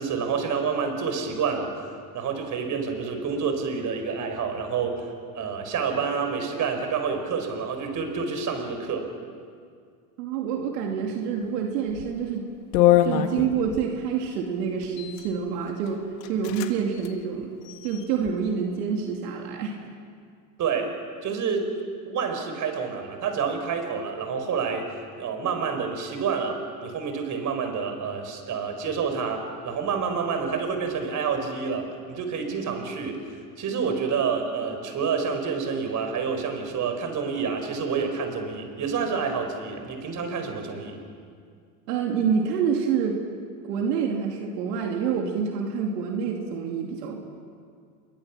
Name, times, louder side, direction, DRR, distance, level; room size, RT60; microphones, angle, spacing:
voice 1, 0.0-1.7 2.1-5.1 5.3-9.1 20.6-20.9 21.2-21.7 22.1-24.9 25.2-33.2 33.6-41.0, right 5 dB, 40° right, 5 dB, 4.6 m, -28 dB
voice 2, 10.2-12.5 13.0-17.5 17.8-19.7 41.9-43.2 43.6-47.2, right 6 dB, 75° right, 1 dB, 2.9 m, -27 dB
sound 1, 11.9-12.1 12.7-13.9 14.8-15.3 15.9-16.0 16.2-16.7 17.0-17.1 17.6-18.3, left 12 dB, 80° left, 1.8 m, -23 dB
27.5 x 23.0 x 6.0 m, 2.2 s
supercardioid pair, 110°, 48 cm